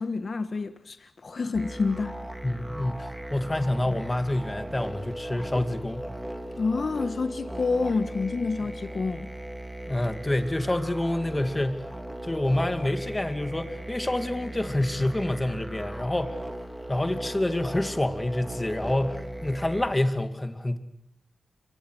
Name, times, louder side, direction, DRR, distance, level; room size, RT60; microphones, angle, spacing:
voice 1, 0.0-2.1 6.6-9.3, left 4 dB, 60° left, 1.5 m, -28 dB
sound 1, 1.5-19.9, right 1 dB, 5° right, 3.1 m, -37 dB
voice 2, 2.4-6.1 8.6-8.7 9.9-11.9 12.2-16.4 16.9-20.8, left 1 dB, 20° left, 2.5 m, -27 dB
28.0 x 23.5 x 6.4 m
cardioid pair, 60°, 0 cm